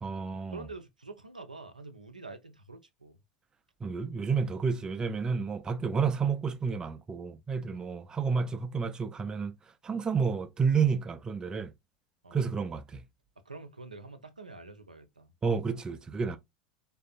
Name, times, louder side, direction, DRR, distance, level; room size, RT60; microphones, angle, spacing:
voice 1, 0.0-0.7 3.8-9.5 9.8-11.7 12.3-13.0 15.4-16.4, right 5 dB, 20° right, 0.4 m, -30 dB
voice 2, 0.5-3.2 7.7-7.9 12.2-12.5 13.5-15.3 16.3-16.4, right 3 dB, 85° right, 0.4 m, -46 dB
3.3 x 2.6 x 2.3 m
figure-of-eight pair, 80°, 4 cm